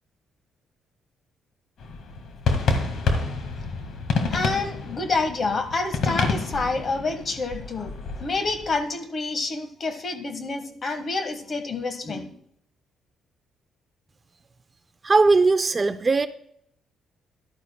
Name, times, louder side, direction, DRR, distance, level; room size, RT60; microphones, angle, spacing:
sound 1, 1.8-8.8, left 4 dB, 65° left, 1.8 m, -28 dB
voice 1, 4.3-12.3, left 3 dB, 40° left, 9 dB, 1.5 m, -28 dB
voice 2, 15.0-16.3, right 3 dB, 30° right, 12 dB, 0.5 m, -19 dB
14.0 x 11.5 x 2.3 m, 0.69 s
cardioid pair, 90°, 0 cm